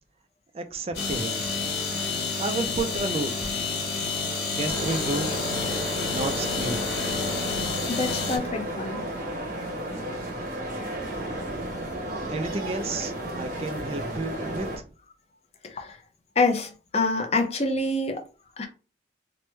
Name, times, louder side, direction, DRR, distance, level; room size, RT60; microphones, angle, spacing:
voice 1, 0.5-1.6 2.4-3.8 4.6-5.4 6.1-6.8 12.3-14.7, right 2 dB, 35° right, 0.4 m, -31 dB
sound 1, 0.9-8.4, left 4 dB, 65° left, 0.8 m, -29 dB
sound 2, 4.6-14.8, right 1 dB, 50° right, 0.8 m, -33 dB
voice 2, 7.9-9.0 15.7-16.0 16.4-18.2 18.6-18.7, left 3 dB, 35° left, 0.6 m, -26 dB
3.1 x 2.1 x 3.1 m
head